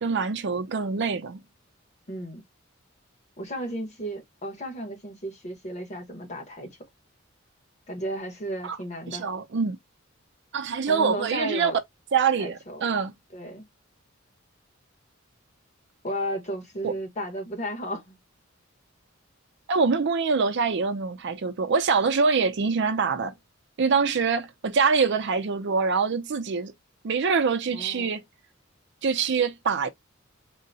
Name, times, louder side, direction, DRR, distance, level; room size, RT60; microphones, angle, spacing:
voice 1, 0.0-1.4 8.6-8.8 9.1-9.8 10.5-11.7 12.1-13.1 16.8-16.9 19.7-23.3 23.8-26.7 27.0-28.2 29.0-29.9, right 5 dB, 60° right, 0.5 m, -24 dB
voice 2, 2.1-2.4 3.4-6.8 7.9-9.3 10.9-11.8 12.4-12.9 13.3-13.6 16.0-18.2 27.7-28.1, equal, 35° left, 1.1 m, -34 dB
3.8 x 2.1 x 2.7 m
head